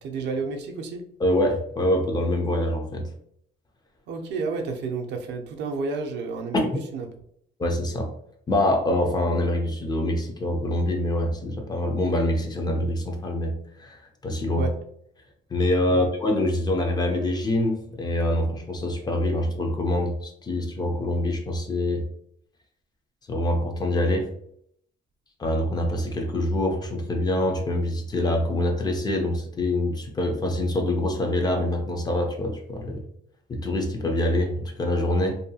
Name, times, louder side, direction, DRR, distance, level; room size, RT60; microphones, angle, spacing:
voice 1, 0.0-1.0 4.1-7.1 14.6-14.8 15.9-16.1, right 4 dB, 70° right, 3 dB, 0.5 m, -31 dB
voice 2, 1.2-3.1 6.5-6.6 7.6-8.1 8.5-14.7 15.5-22.1 23.3-24.3 25.4-33.0 33.5-35.4, left 1 dB, 20° left, 3 dB, 0.4 m, -25 dB
2.6 x 2.2 x 2.6 m, 0.69 s
cardioid pair, 145°, 19 cm